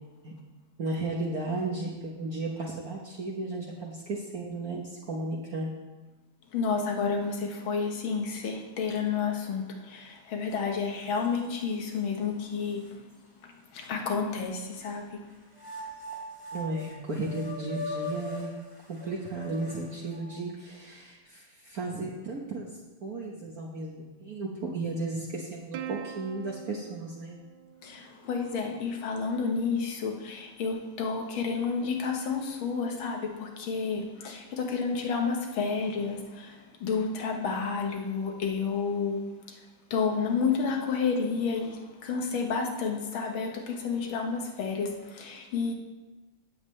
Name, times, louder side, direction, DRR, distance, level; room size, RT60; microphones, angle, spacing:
voice 1, 0.8-5.7 16.5-18.5 18.9-22.7 23.0-27.4, right 2 dB, 50° right, -3 dB, 1.4 m, -34 dB
voice 2, 6.5-13.1 13.4-15.3 27.8-39.6 39.9-45.7, left 5 dB, 75° left, 2 dB, 2.0 m, -30 dB
sound 1, 10.5-10.6 11.1-12.0 12.6-12.7 13.8-15.0 15.5-20.4, left 2 dB, 15° right, 1.9 m, -41 dB
Plucked string instrument, 25.7-28.5, right 9 dB, 75° right, 1.4 m, -43 dB
16.0 x 7.3 x 3.2 m, 1.2 s
omnidirectional pair, 2.2 m